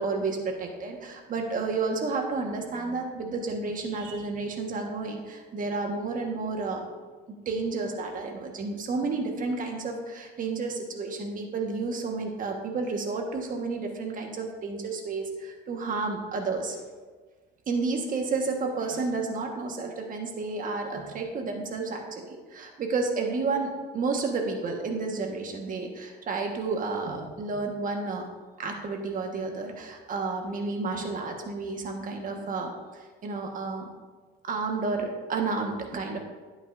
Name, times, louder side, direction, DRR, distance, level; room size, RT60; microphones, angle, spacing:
voice 1, 0.0-6.8 7.3-16.8 17.7-28.3 28.6-33.9 34.4-36.2, right 3 dB, 45° right, 2 dB, 1.4 m, -31 dB
10.5 x 8.8 x 2.6 m, 1.4 s
cardioid pair, 120°, 20 cm